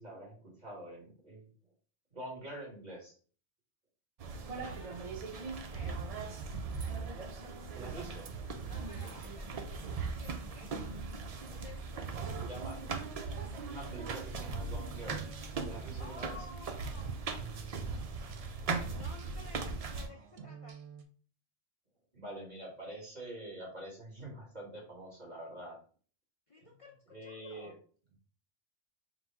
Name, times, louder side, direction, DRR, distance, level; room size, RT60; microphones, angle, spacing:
voice 1, 0.0-1.5 2.1-3.2 7.7-8.3 12.4-12.8 13.7-15.2 15.7-16.4 22.1-25.8 26.6-26.7 27.1-27.7, right 1 dB, 35° right, -3 dB, 1.9 m, -46 dB
sound 1, 4.2-20.1, right 4 dB, 65° right, 0.3 m, -39 dB
voice 2, 4.6-6.0 8.7-10.7 11.5-12.5 16.0-18.3 18.8-20.8 26.5-27.7, left 2 dB, 40° left, 0 dB, 0.5 m, -54 dB
sound 2, 15.0-21.0, right 7 dB, 85° right, 1.0 m, -52 dB
3.9 x 2.2 x 4.4 m, 0.42 s
omnidirectional pair, 1.2 m